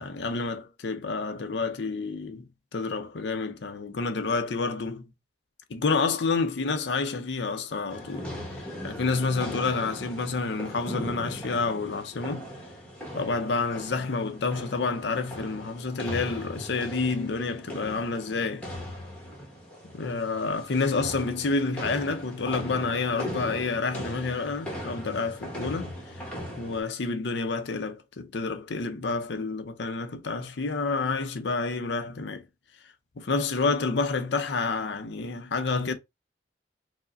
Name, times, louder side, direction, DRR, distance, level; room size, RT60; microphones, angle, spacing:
voice 1, 0.0-2.4 2.7-5.1 5.7-12.5 13.1-18.7 19.9-26.0 26.6-32.4 33.2-35.9, left 4 dB, 75° left, 0.6 m, -29 dB
sound 1, 7.9-26.8, equal, 5° left, 1.1 m, -39 dB
4.7 x 2.1 x 2.5 m
head